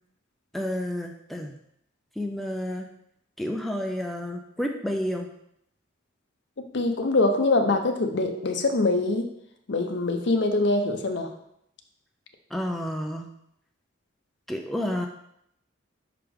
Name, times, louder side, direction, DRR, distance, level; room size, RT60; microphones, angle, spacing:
voice 1, 0.5-1.6 2.2-2.9 3.4-5.3 12.5-13.3 14.5-15.1, left 1 dB, ahead, 2 dB, 0.4 m, -30 dB
voice 2, 6.7-9.3 9.7-11.3, left 2 dB, 55° left, 5 dB, 0.7 m, -23 dB
5.8 x 5.1 x 3.6 m, 0.75 s
head